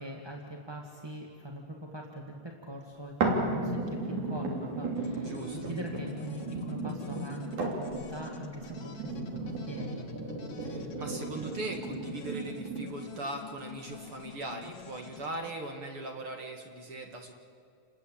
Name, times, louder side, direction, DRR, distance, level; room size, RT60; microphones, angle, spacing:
voice 1, 0.0-10.1, right 1 dB, 10° right, 0 dB, 1.3 m, -42 dB
sound 1, 3.2-13.2 13.8-13.9, right 2 dB, 75° right, 4.7 m, -35 dB
sound 2, 5.0-15.5, left 7 dB, 55° left, 2.6 m, -48 dB
voice 2, 5.2-5.7 10.6-17.3, right 2 dB, 50° right, 3 dB, 2.4 m, -40 dB
29.0 x 21.0 x 8.6 m, 2.4 s
omnidirectional pair, 3.4 m